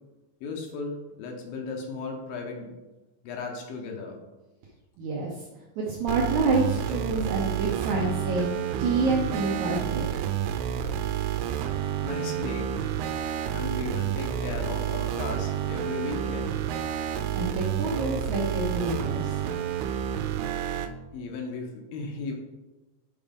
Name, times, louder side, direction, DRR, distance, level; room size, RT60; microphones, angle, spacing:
voice 1, 0.4-2.7 3.2-4.2 12.0-12.8 13.5-16.6 21.1-22.4, left 4 dB, 70° left, 2 dB, 2.5 m, -35 dB
voice 2, 5.0-5.3 5.8-10.4 17.3-19.4, right 3 dB, 70° right, -2 dB, 1.8 m, -28 dB
sound 1, 6.1-20.9, right 10 dB, 90° right, 2.6 m, -30 dB
7.4 x 5.0 x 5.2 m, 1.1 s
omnidirectional pair, 4.5 m